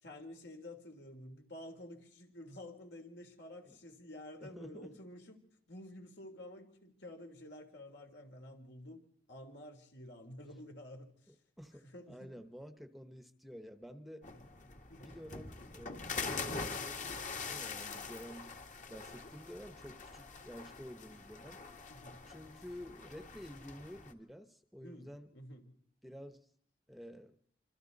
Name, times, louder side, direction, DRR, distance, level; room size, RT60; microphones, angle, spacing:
voice 1, 0.0-5.4 5.7-9.0 9.3-11.4 11.7-12.3 14.9-15.2 21.9-22.2 24.8-25.7, left 1 dB, 70° left, 3.5 m, -51 dB
voice 2, 4.4-5.0 11.3-14.3 15.0-18.5 18.9-21.6 22.3-25.3 26.0-26.5 26.9-27.4, equal, ahead, 1.0 m, -50 dB
sound 1, 14.2-24.1, left 4 dB, 45° left, 1.8 m, -44 dB
26.5 x 26.0 x 4.1 m
head